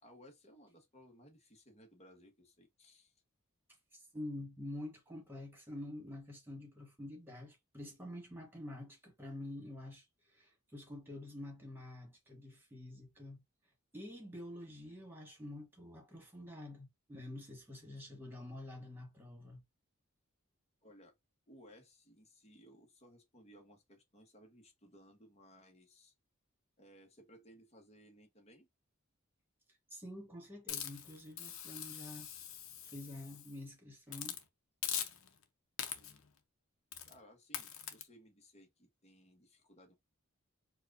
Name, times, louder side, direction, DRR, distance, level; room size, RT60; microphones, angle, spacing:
voice 1, 0.0-3.1 18.0-18.2 20.8-21.1 21.5-26.1 26.8-28.7 35.9-36.2 37.1-40.0, equal, 30° left, 1.2 m, -61 dB
voice 2, 3.9-13.4 13.9-19.6 29.9-32.3 32.8-34.4, left 1 dB, 10° right, 1.7 m, -48 dB
Hiss, 30.7-33.6 34.1-34.4 34.8-35.4 35.8-36.3 36.9-37.2 37.5-38.0, left 9 dB, 85° left, 0.7 m, -42 dB
4.6 x 2.3 x 2.6 m
head